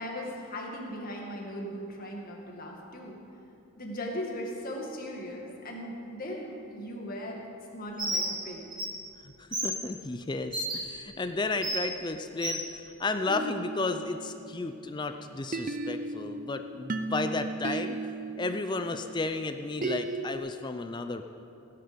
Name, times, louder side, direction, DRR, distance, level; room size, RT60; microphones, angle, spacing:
voice 1, 0.0-3.2 3.8-7.4 7.7-8.7, equal, 40° left, -1 dB, 2.0 m, -38 dB
Bird, 8.0-8.3 8.7-8.8 9.5-9.7 10.5-10.7 11.6-11.8 12.4-12.6, right 1 dB, 20° right, 3.2 m, -30 dB
voice 2, 9.4-12.6 13.0-18.0 18.4-21.3, left 3 dB, 20° left, 8 dB, 0.4 m, -33 dB
sound 1, 13.3-15.0 15.5-20.4, right 3 dB, 35° right, 0.5 m, -36 dB
17.5 x 10.5 x 5.1 m, 2.6 s
head